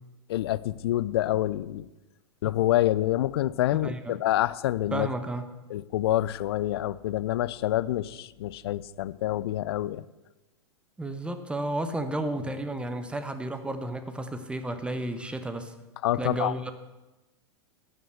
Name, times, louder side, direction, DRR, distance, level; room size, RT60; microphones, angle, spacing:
voice 1, 0.3-1.9 2.4-5.1 5.7-10.0 16.0-16.5, left 14 dB, 60° left, 18 dB, 0.5 m, -27 dB
voice 2, 3.8-4.2 4.9-5.5 11.0-15.7 16.2-16.7, right 2 dB, 5° right, 9 dB, 1.1 m, -32 dB
12.0 x 7.4 x 8.2 m, 1.1 s
figure-of-eight pair, 100°, 15 cm